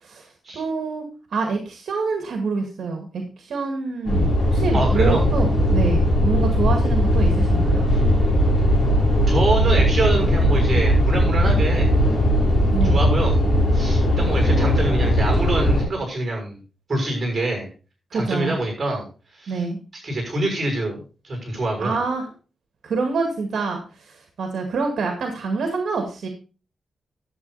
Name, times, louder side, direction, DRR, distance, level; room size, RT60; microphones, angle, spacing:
voice 1, 0.5-1.0 1.3-7.9 12.7-13.0 18.1-18.6 19.5-19.8 21.8-22.3 22.8-26.3, right 4 dB, 70° right, 4 dB, 2.0 m, -26 dB
sound 1, 4.0-15.8, equal, 45° left, 5.9 m, -18 dB
voice 2, 4.7-5.3 9.3-12.0 12.8-13.4 13.7-16.6 16.9-17.7 18.1-19.1 19.3-19.6 20.0-22.0, right 2 dB, 30° right, 2 dB, 6.0 m, -25 dB
11.0 x 7.8 x 4.1 m, 0.33 s
wide cardioid pair, 160°, 0 cm